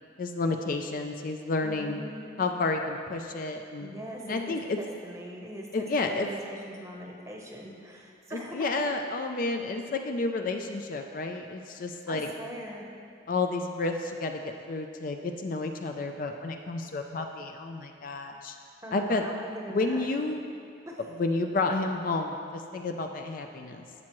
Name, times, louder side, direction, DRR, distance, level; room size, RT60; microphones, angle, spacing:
voice 1, 0.2-2.0 2.4-3.9 4.3-4.8 5.7-6.3 8.3-12.3 13.3-14.4 14.7-18.6 18.9-19.2 19.7-20.4 21.2-23.8, left 3 dB, 45° left, 4 dB, 0.4 m, -30 dB
voice 2, 1.6-2.3 3.8-8.7 12.1-12.9 18.8-20.1 20.9-21.0, equal, 15° right, -1 dB, 0.8 m, -41 dB
12.0 x 7.3 x 3.0 m, 2.5 s
head